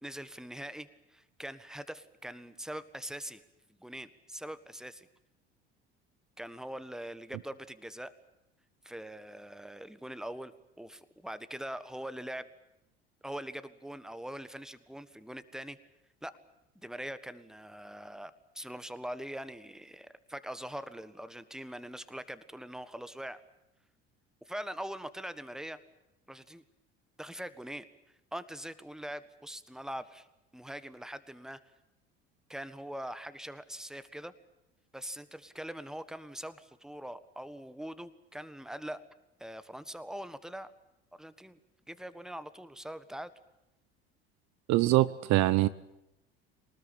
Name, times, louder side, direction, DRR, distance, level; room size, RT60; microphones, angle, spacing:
voice 1, 0.0-3.4 3.8-5.1 6.4-8.1 8.8-12.5 13.2-15.8 16.2-16.4 16.8-23.4 24.4-25.8 26.3-26.6 27.2-27.9 28.3-30.3 30.5-31.6 32.5-34.3 34.9-39.0 39.4-40.7 41.1-41.6 41.9-43.3, right 1 dB, ahead, 1.5 m, -42 dB
voice 2, 44.7-45.7, right 17 dB, 55° right, 0.8 m, -24 dB
24.0 x 19.0 x 8.7 m
hypercardioid pair, 65°, 33 cm